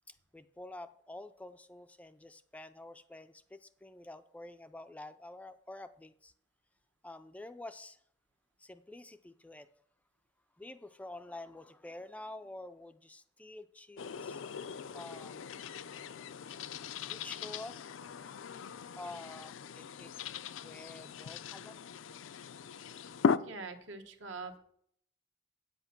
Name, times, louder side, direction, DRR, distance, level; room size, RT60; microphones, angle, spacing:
voice 1, 0.1-6.3 7.0-8.0 8.6-9.7 10.6-14.4 14.9-15.4 17.1-18.4 18.9-20.1 20.6-21.9, left 2 dB, 5° left, 10 dB, 0.3 m, -48 dB
sound 1, 14.0-23.4, left 6 dB, 80° left, 0.4 m, -38 dB
voice 2, 23.4-24.6, right 4 dB, 75° right, 6 dB, 1.2 m, -44 dB
8.5 x 8.0 x 5.9 m, 0.67 s
head